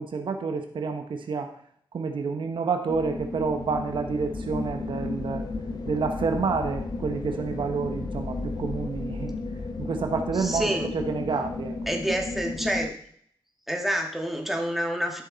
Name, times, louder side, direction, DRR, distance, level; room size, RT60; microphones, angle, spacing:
voice 1, 0.0-1.5 1.9-5.4 5.9-9.4 9.8-11.7, right 5 dB, 75° right, 5 dB, 1.1 m, -29 dB
sound 1, 2.9-12.9, left 3 dB, 50° left, 1.2 m, -34 dB
voice 2, 10.3-10.9 11.9-12.9 13.7-15.2, equal, 5° right, 2 dB, 1.9 m, -28 dB
12.5 x 6.5 x 4.0 m, 0.62 s
cardioid pair, 80°, 8 cm